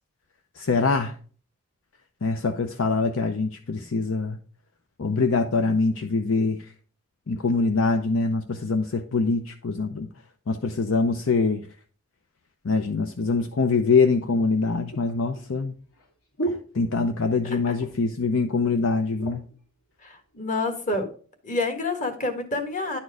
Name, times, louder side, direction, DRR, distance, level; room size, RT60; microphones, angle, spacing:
voice 1, 0.6-1.2 2.2-4.4 5.0-6.7 7.3-10.1 10.5-11.7 12.6-15.7 16.7-19.4, left 4 dB, 60° left, 0.6 m, -24 dB
sound 1, 14.3-17.4 17.7-18.2 18.5-18.6 18.9-19.6 20.3-21.1 21.7-21.9, right 2 dB, 80° left, 2.5 m, -36 dB
voice 2, 20.0-21.1 21.4-23.0, left 2 dB, 35° left, 1.5 m, -28 dB
10.5 x 4.4 x 4.7 m
head